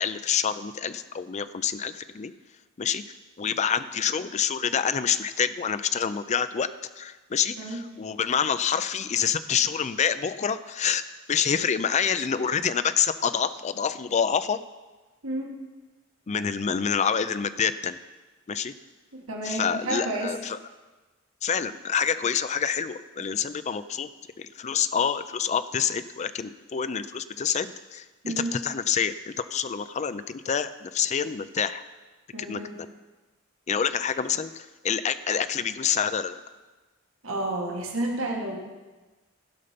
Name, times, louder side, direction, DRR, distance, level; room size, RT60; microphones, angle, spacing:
voice 1, 0.0-2.3 2.8-3.0 3.4-6.7 7.0-11.0 11.3-14.6 16.3-18.0 18.5-18.7 19.4-20.6 21.4-24.1 24.4-31.8 32.4-32.9 33.7-36.4, left 7 dB, 35° left, 13 dB, 0.4 m, -27 dB
voice 2, 15.2-15.5 19.1-20.4 28.2-28.6 32.3-32.8 37.2-38.6, right 1 dB, 80° right, 1 dB, 1.7 m, -31 dB
16.0 x 5.6 x 5.1 m, 1.2 s
head